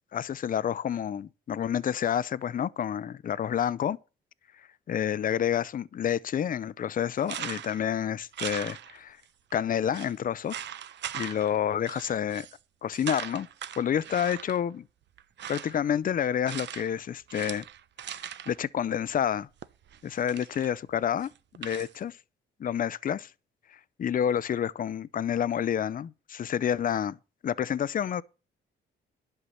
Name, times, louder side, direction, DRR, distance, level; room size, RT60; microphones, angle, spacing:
voice 1, 0.1-4.0 4.9-9.2 9.5-10.6 11.1-12.5 12.8-13.5 13.8-14.8 15.5-17.6 18.1-18.2 18.5-19.5 20.1-21.3 21.6-22.2 22.6-23.2 24.0-27.2 27.4-28.2, left 9 dB, 45° left, 0.6 m, -29 dB
sound 1, 7.2-7.9 8.3-9.2 9.5-9.6 9.9-10.1 10.5-11.6 11.9-12.6 12.9-14.6 15.2-15.8 16.5-17.0 17.3-18.6 19.6-20.8 21.2-21.9, right 10 dB, 60° right, 0.9 m, -40 dB
11.5 x 5.7 x 7.9 m
cardioid pair, 90°, 20 cm